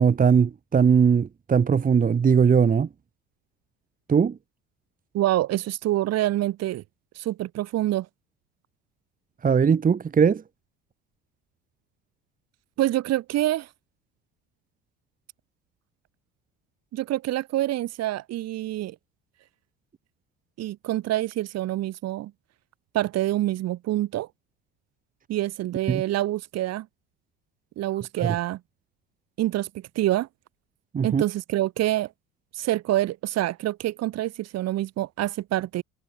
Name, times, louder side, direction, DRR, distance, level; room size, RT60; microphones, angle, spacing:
voice 1, 0.0-2.9 4.1-4.4 9.4-10.4 25.9-26.0 28.2-28.3 30.9-31.2, right 6 dB, 30° right, 1.6 m, -20 dB
voice 2, 5.1-6.8 7.2-8.1 12.8-13.7 16.9-19.0 20.6-22.3 22.9-24.3 25.3-26.9 27.8-28.6 29.4-30.3 31.0-32.1 32.5-35.8, right 15 dB, 60° right, 3.9 m, -26 dB
supercardioid pair, 90°, 29 cm